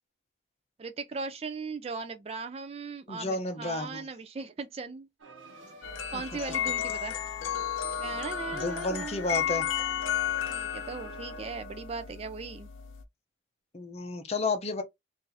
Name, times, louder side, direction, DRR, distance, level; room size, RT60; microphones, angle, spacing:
voice 1, 0.8-5.1 6.1-7.2 8.0-9.2 10.5-12.7, right 4 dB, 30° right, 0.3 m, -38 dB
voice 2, 3.1-4.1 6.1-6.2 8.5-9.7 13.7-14.8, left 3 dB, 30° left, 0.5 m, -31 dB
sound 1, 5.2-11.5, right 2 dB, 90° right, 1.0 m, -50 dB
sound 2, 5.8-13.0, left 10 dB, 80° left, 0.5 m, -33 dB
2.7 x 2.5 x 3.9 m
head